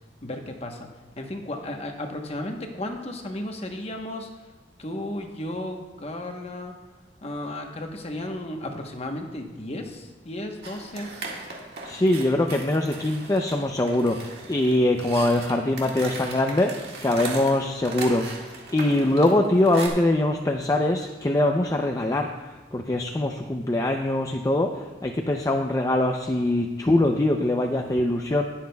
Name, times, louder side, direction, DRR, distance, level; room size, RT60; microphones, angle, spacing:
voice 1, 0.2-0.9 1.2-4.3 4.8-6.8 7.2-11.1, left 1 dB, 35° left, 3 dB, 1.0 m, -34 dB
sound 1, 10.6-19.9, right 3 dB, 70° right, 1.8 m, -38 dB
voice 2, 11.8-18.3 18.7-22.3 22.7-28.4, left 1 dB, 20° left, 3 dB, 0.5 m, -23 dB
19.5 x 7.4 x 2.3 m, 1.2 s
head